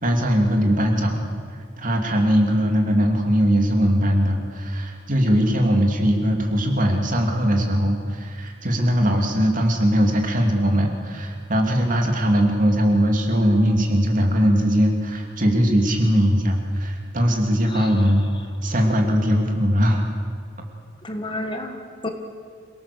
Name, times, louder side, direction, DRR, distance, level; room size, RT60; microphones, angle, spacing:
voice 1, 0.0-1.2 1.5-18.3 18.6-20.1, equal, 45° right, 2 dB, 2.8 m, -20 dB
voice 2, 21.0-22.1, left 1 dB, 25° left, 5 dB, 1.6 m, -31 dB
27.5 x 18.0 x 6.9 m, 2.1 s
head